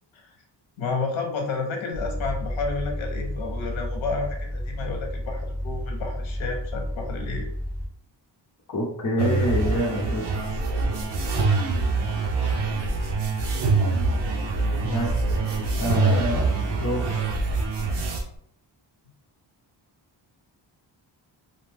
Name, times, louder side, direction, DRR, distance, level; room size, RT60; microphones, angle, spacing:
voice 1, 0.8-7.5 9.2-9.3, left 4 dB, 80° left, 2 dB, 0.7 m, -31 dB
sound 1, 1.9-7.9, equal, 5° right, 0.6 m, -31 dB
voice 2, 8.7-10.3 14.8-15.2 15.8-17.3, equal, 40° left, -1 dB, 0.6 m, -27 dB
sound 2, 9.2-18.2, right 3 dB, 60° right, 0.5 m, -24 dB
2.6 x 2.1 x 3.2 m, 0.68 s
wide cardioid pair, 175°, 46 cm